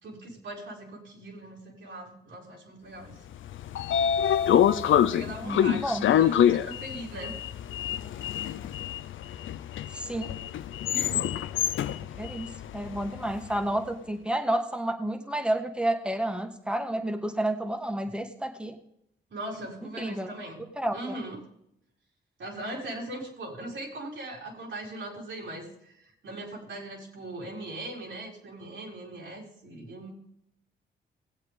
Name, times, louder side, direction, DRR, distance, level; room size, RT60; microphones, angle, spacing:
voice 1, 0.0-3.1 5.1-7.4 10.9-11.4 19.3-20.6 20.9-21.5 22.4-30.1, right 1 dB, 75° right, -3 dB, 4.3 m, -40 dB
Sliding door, 3.3-13.5, left 10 dB, 75° left, 0.5 m, -26 dB
voice 2, 5.4-6.1 9.9-10.3 12.0-18.8 20.0-20.3 20.6-21.2, right 1 dB, 5° right, 5 dB, 1.8 m, -30 dB
19.0 x 8.1 x 3.7 m, 0.77 s
cardioid pair, 60°, 20 cm